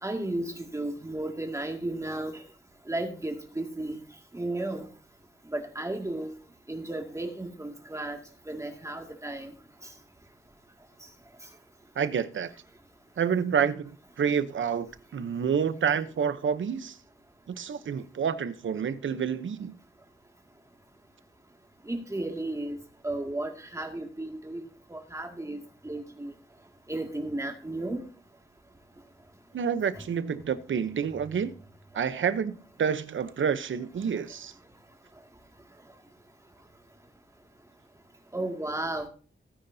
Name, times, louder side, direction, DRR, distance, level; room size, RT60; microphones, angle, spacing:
voice 1, 0.0-2.3 2.9-4.0 4.3-4.9 5.5-6.3 6.7-8.2 8.5-9.5 21.9-22.8 23.0-24.6 24.9-26.3 26.9-28.0 38.3-39.1, right 1 dB, 15° right, 2.2 m, -34 dB
voice 2, 12.0-12.5 13.2-17.0 17.5-19.8 29.5-31.5 31.9-32.5 32.8-34.5, right 7 dB, 80° right, 0.8 m, -28 dB
17.5 x 9.7 x 2.7 m
wide cardioid pair, 105°, 20 cm